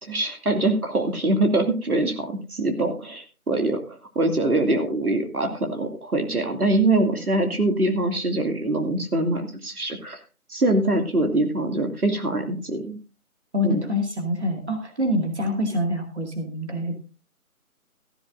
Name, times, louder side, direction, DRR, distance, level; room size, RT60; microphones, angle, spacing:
voice 1, 0.0-10.2 10.5-13.0 13.6-13.8, right 2 dB, 80° right, 5 dB, 2.5 m, -23 dB
voice 2, 13.5-16.9, left 1 dB, 50° right, 3 dB, 2.2 m, -26 dB
14.5 x 13.5 x 2.6 m, 0.32 s
figure-of-eight pair, 180°, 44 cm